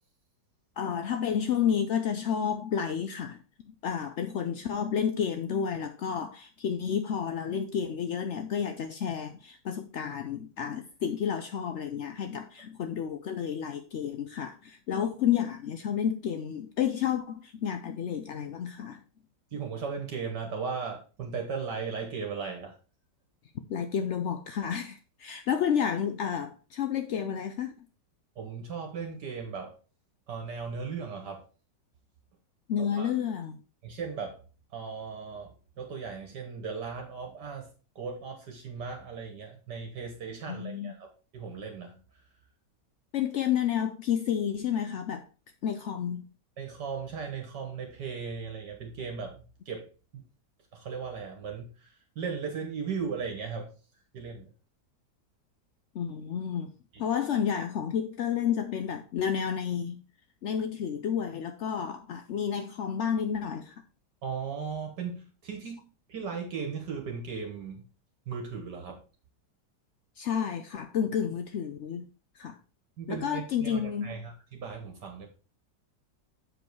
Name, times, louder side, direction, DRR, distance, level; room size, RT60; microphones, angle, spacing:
voice 1, 0.8-3.4 3.7-19.0 23.7-27.7 32.7-33.6 40.5-41.0 43.1-45.2 45.6-46.2 55.9-56.7 57.0-60.0 60.4-63.7 70.2-72.1 72.4-72.6 73.1-74.1, left 8 dB, 70° left, 0.6 m, -30 dB
voice 2, 19.5-22.7 28.4-29.8 30.3-31.4 32.8-33.1 33.8-34.4 34.7-37.7 38.0-42.0 46.6-49.9 50.1-50.2 50.7-53.7 54.1-54.5 56.9-57.0 64.2-67.8 68.3-69.0 73.0-75.3, right 5 dB, 70° right, 1.9 m, -37 dB
7.5 x 5.3 x 4.6 m
omnidirectional pair, 1.9 m